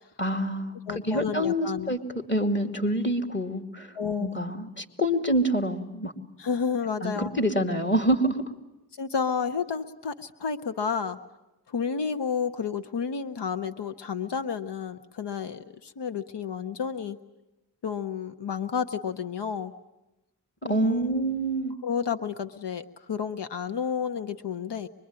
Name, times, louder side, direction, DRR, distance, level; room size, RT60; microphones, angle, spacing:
voice 1, 0.2-2.0 2.3-3.9 4.2-6.1 7.0-8.4 20.6-21.7, right 1 dB, 25° left, 4 dB, 2.7 m, -26 dB
voice 2, 0.9-2.0 3.9-4.4 6.4-7.3 8.9-11.2 11.7-17.2 17.8-19.7 20.6-21.2 21.8-24.9, left 6 dB, 85° left, 10 dB, 0.9 m, -31 dB
24.5 x 22.5 x 9.6 m, 0.97 s
cardioid pair, 45°, 40 cm